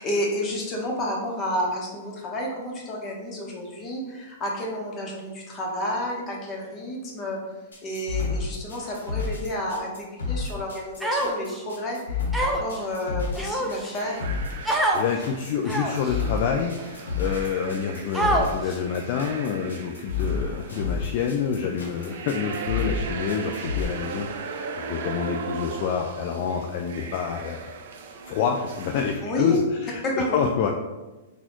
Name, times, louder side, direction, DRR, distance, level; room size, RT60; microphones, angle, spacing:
voice 1, 0.0-7.4 7.8-14.3 29.2-29.6 30.0-30.5, left 1 dB, 30° left, -1 dB, 1.0 m, -30 dB
sound 1, 7.7-23.8, left 5 dB, 85° left, 0.9 m, -30 dB
Human voice, 11.0-11.6 12.3-12.8 13.4-14.0 14.6-15.0 15.7-16.1 16.8-16.9 18.1-18.7, right 1 dB, 5° right, 0.5 m, -25 dB
sound 2, 14.0-29.2, right 5 dB, 65° right, 0.4 m, -38 dB
voice 2, 14.6-27.8 28.3-30.7, left 7 dB, 50° left, 2 dB, 0.3 m, -28 dB
4.0 x 2.3 x 2.9 m, 1.1 s
hypercardioid pair, 120°, 0 cm